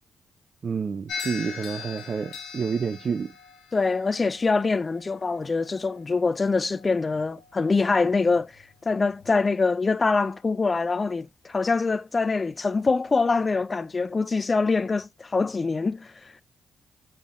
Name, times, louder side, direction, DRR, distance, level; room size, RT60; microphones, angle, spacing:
voice 1, 0.6-3.3, right 6 dB, 50° right, 0.4 m, -29 dB
sound 1, 1.1-9.4, left 6 dB, 75° left, 1.0 m, -42 dB
voice 2, 3.7-8.5 8.9-16.1, left 4 dB, 35° left, 0.3 m, -24 dB
4.0 x 3.4 x 2.4 m
hypercardioid pair, 45°, 0 cm